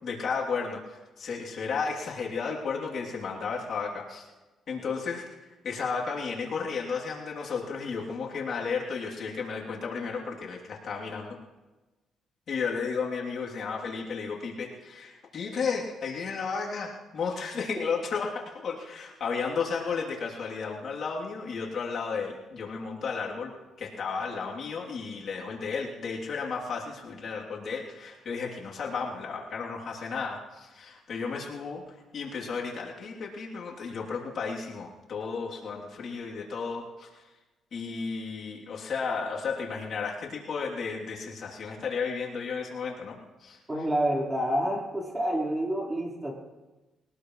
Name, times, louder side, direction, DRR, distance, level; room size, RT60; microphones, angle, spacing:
voice 1, 0.0-4.3 4.7-5.2 5.6-11.4 12.5-37.1 37.7-43.6, left 5 dB, 60° left, -3 dB, 3.1 m, -33 dB
voice 2, 43.7-46.3, right 1 dB, 15° right, -2 dB, 4.4 m, -28 dB
22.0 x 19.5 x 3.2 m, 1.1 s
cardioid pair, 90°, 0 cm